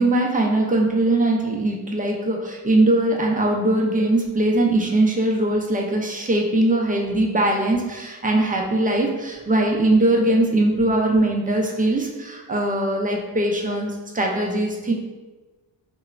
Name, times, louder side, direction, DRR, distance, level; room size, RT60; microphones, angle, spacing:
voice 1, 0.0-14.9, right 1 dB, 20° right, 0 dB, 0.3 m, -21 dB
2.9 x 2.0 x 2.4 m, 1.2 s
cardioid pair, 65°, 45 cm